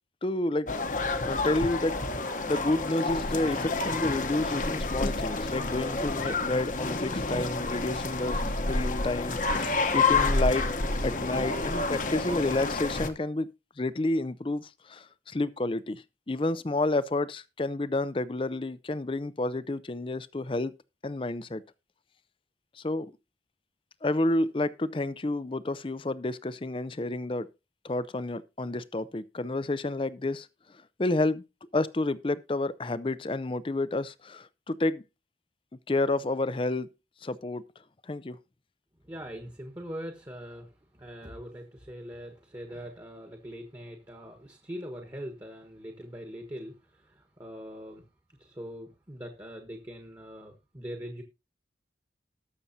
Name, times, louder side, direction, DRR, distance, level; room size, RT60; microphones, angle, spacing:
voice 1, 0.2-1.9 2.5-10.7 11.0-13.5 13.8-20.7 21.0-21.6 22.8-23.1 24.0-27.5 27.8-30.5 31.0-31.4 31.7-35.0 35.9-36.9 37.2-37.6 38.0-38.4, left 2 dB, 30° left, 0.5 m, -30 dB
sound 1, 0.7-13.1, left 3 dB, 45° left, 1.0 m, -29 dB
voice 2, 39.0-48.1 48.4-51.2, equal, 20° right, 1.3 m, -42 dB
19.5 x 6.9 x 2.8 m
head